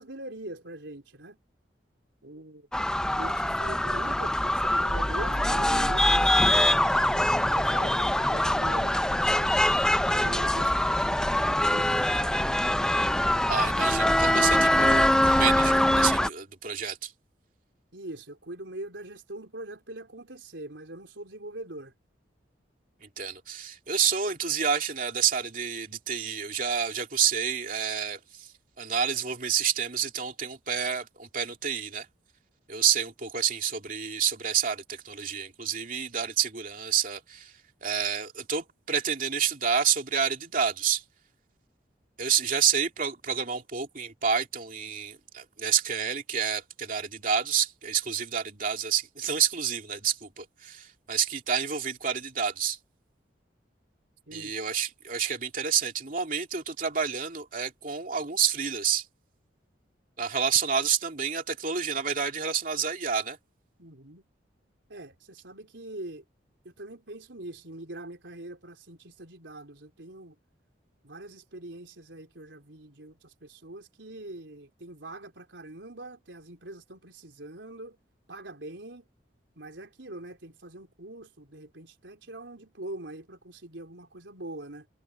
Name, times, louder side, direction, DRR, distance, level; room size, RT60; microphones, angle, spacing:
voice 1, 0.0-1.4 2.2-2.7 3.1-9.5 10.0-12.6 17.9-21.9 54.3-54.5 63.8-64.3 64.9-66.2 66.6-70.4 71.0-78.0 78.3-79.1 79.6-84.9, right 1 dB, 85° right, 3.9 m, -43 dB
sound 1, 2.7-16.3, left 1 dB, 5° left, 0.5 m, -23 dB
voice 2, 13.5-17.1 23.0-28.5 28.8-32.1 32.7-37.5 37.8-41.0 42.2-52.8 54.3-59.1 60.2-63.4, right 7 dB, 45° right, 2.6 m, -29 dB
head